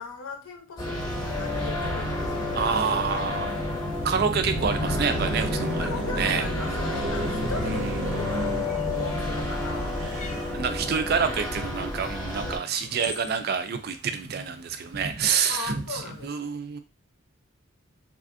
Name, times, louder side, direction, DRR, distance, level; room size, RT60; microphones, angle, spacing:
voice 1, 0.0-3.3 5.8-10.0 15.5-16.5, left 4 dB, 80° left, 4 dB, 0.7 m, -38 dB
sound 1, 0.8-12.6, left 2 dB, 20° left, 0.8 m, -30 dB
Car passing by, 0.9-13.4 13.8-16.3, right 1 dB, 75° right, 0.7 m, -35 dB
voice 2, 2.5-3.5 4.0-5.9 6.2-6.8 7.6-8.0 10.5-16.8, right 6 dB, 45° right, 8 dB, 0.3 m, -28 dB
sound 2, 6.2-6.6 8.6-9.1 10.1-10.6 12.3-12.4 13.0-13.4, left 3 dB, 35° left, 0.4 m, -42 dB
3.3 x 2.4 x 2.5 m, 0.31 s
head